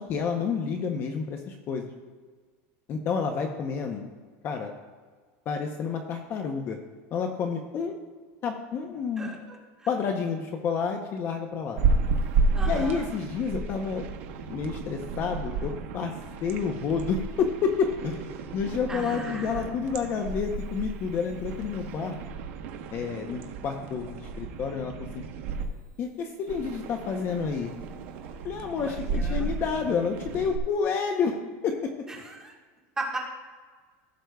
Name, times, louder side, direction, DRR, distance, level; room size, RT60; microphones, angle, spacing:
voice 1, 0.0-1.9 2.9-4.1 4.4-4.7 5.5-6.8 7.1-8.0 8.4-9.3 9.9-11.9 12.6-14.0 14.5-16.1 16.4-22.2 22.9-25.2 26.0-27.7 28.4-31.4 31.6-31.9, left 6 dB, 30° left, 4 dB, 0.7 m, -29 dB
voice 2, 9.2-9.9 12.5-13.1 18.9-19.6 28.7-29.5 32.1-32.5 33.0-33.2, right 3 dB, 10° right, -2 dB, 1.5 m, -37 dB
sound 1, 11.8-25.6 26.5-30.6, right 4 dB, 70° right, 1.1 m, -32 dB
16.5 x 7.7 x 2.3 m, 1.5 s
supercardioid pair, 160°, 7 cm